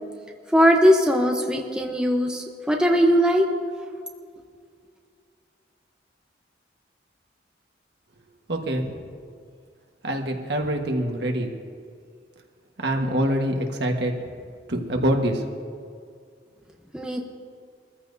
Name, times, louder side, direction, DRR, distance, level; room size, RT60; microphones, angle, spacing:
voice 1, 0.5-3.5 16.9-17.2, equal, 5° right, 1 dB, 0.8 m, -19 dB
voice 2, 8.5-9.0 10.0-11.6 12.8-14.1 14.7-15.4, right 1 dB, 65° right, 2 dB, 1.5 m, -25 dB
23.0 x 14.0 x 2.7 m, 2.2 s
head